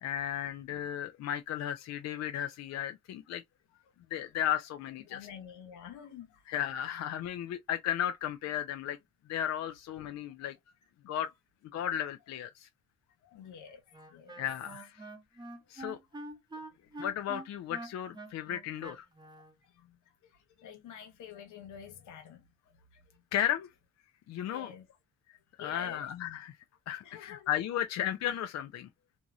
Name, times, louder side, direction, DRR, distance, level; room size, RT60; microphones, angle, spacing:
voice 1, 0.0-3.4 4.1-5.2 6.5-9.0 9.3-10.5 11.1-11.3 11.7-12.7 14.4-15.0 15.7-16.0 17.0-19.1 23.3-23.7 24.3-24.7 25.6-26.5 26.9-28.9, left 10 dB, 60° left, 0.4 m, -34 dB
voice 2, 5.1-6.4 13.2-14.4 19.6-20.0 20.2-23.2 24.4-24.8 25.6-26.1 27.0-27.5, left 8 dB, 80° left, 0.8 m, -49 dB
Wind instrument woodwind instrument, 13.9-19.5, right 1 dB, 15° right, 0.8 m, -45 dB
2.9 x 2.7 x 2.3 m
cardioid pair, 90°, 30 cm